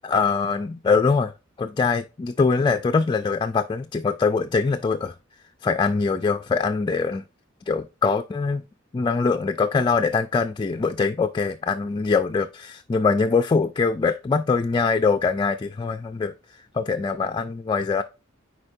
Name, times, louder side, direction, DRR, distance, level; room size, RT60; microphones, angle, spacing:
voice 1, 0.0-5.2 5.6-7.2 7.7-8.6 8.9-16.3 16.7-18.0, left 4 dB, 25° left, 0.3 m, -23 dB
9.7 x 4.3 x 2.6 m
head